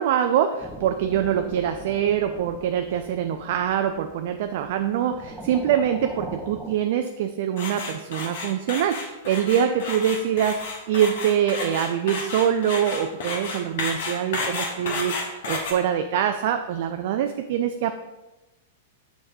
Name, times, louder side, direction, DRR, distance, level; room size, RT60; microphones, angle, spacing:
voice 1, 0.0-10.6 10.9-17.9, right 9 dB, 50° right, 7 dB, 0.3 m, -24 dB
sound 1, 0.6-6.7, right 1 dB, 5° right, 0.7 m, -41 dB
sound 2, 7.6-15.7, left 3 dB, 55° left, 1.1 m, -31 dB
6.4 x 5.9 x 2.6 m, 1.1 s
figure-of-eight pair, 100°, 0 cm